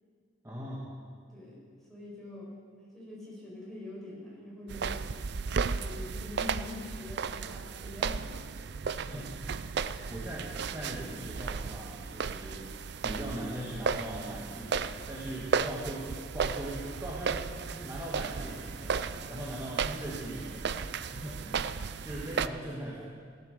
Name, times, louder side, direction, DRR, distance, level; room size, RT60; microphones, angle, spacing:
voice 1, 0.4-0.9 9.0-12.7 13.0-23.1, right 1 dB, 15° right, -5 dB, 1.8 m, -40 dB
voice 2, 1.3-1.6 1.9-4.9 5.7-8.2, left 2 dB, ahead, -6 dB, 5.4 m, -44 dB
sound 1, 4.7-22.5, right 5 dB, 60° right, 0.5 m, -35 dB
16.5 x 11.5 x 6.8 m, 2.1 s
head